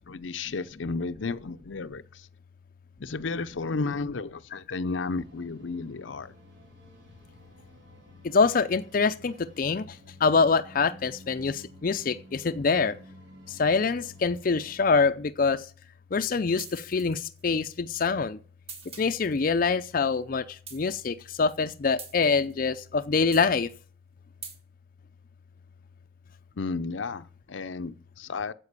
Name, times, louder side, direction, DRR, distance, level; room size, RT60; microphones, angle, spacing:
voice 1, 0.1-2.3 3.0-6.3 26.6-28.5, left 4 dB, 90° left, 0.6 m, -33 dB
sound 1, 4.9-14.8, left 1 dB, 75° right, 4.3 m, -52 dB
voice 2, 8.2-10.0 10.2-13.0 13.5-15.7 16.1-18.4 19.0-23.7, left 4 dB, 45° left, 0.5 m, -25 dB
sound 2, 16.6-17.6 18.7-19.5 20.7-21.2 22.0-22.7 23.3-23.8 24.4-24.6, right 5 dB, 30° right, 1.7 m, -44 dB
9.8 x 7.6 x 8.1 m
head